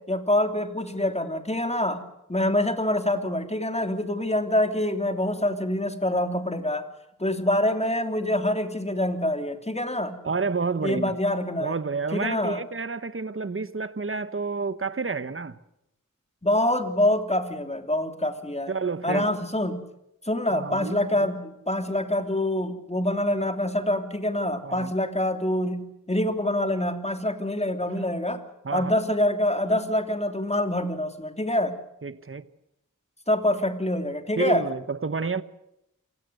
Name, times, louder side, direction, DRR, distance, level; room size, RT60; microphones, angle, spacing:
voice 1, 0.1-2.0 2.3-6.9 7.2-10.2 10.8-11.7 12.1-12.6 16.4-18.7 19.0-19.8 20.2-28.4 28.7-31.7 33.3-34.6, left 1 dB, 20° left, 3.1 m, -25 dB
voice 2, 10.2-11.1 11.6-15.6 18.7-19.2 20.5-21.3 24.6-24.9 28.6-29.0 32.0-32.5 34.4-35.4, right 4 dB, 40° right, 1.2 m, -30 dB
27.5 x 17.5 x 7.9 m
wide cardioid pair, 55°, 33 cm